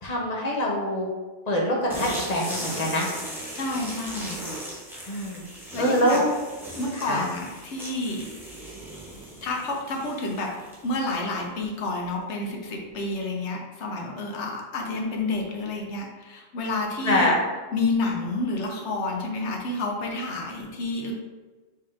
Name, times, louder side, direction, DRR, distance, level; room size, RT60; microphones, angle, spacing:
voice 1, 0.0-1.1 1.5-3.1 5.1-5.4 5.8-6.3 7.0-7.3 17.0-17.4, equal, 40° left, -3 dB, 0.8 m, -24 dB
sound 1, 1.9-11.4, right 1 dB, ahead, 0.8 m, -38 dB
voice 2, 3.5-4.4 5.7-6.2 6.7-8.3 9.4-10.5 10.8-17.4 17.7-21.1, left 2 dB, 75° left, 0 dB, 1.1 m, -29 dB
4.2 x 4.1 x 2.5 m, 1.3 s
omnidirectional pair, 1.2 m